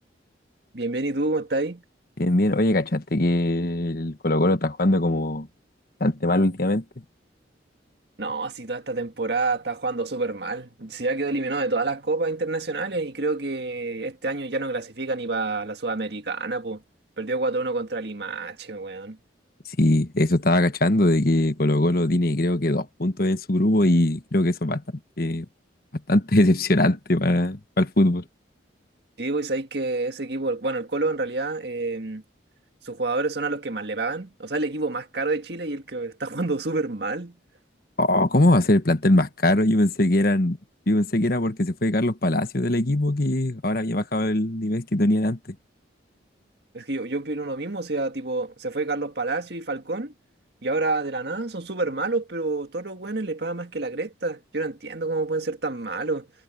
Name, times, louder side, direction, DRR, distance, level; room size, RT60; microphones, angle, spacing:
voice 1, 0.7-1.8 8.2-16.8 17.2-19.2 29.2-32.2 32.8-37.4 46.7-50.1 50.6-56.3, right 3 dB, 60° right, 1.8 m, -28 dB
voice 2, 2.2-5.5 6.0-6.8 19.8-24.8 25.2-25.4 26.1-28.2 38.0-40.6 40.9-45.5, left 1 dB, 50° left, 1.3 m, -21 dB
head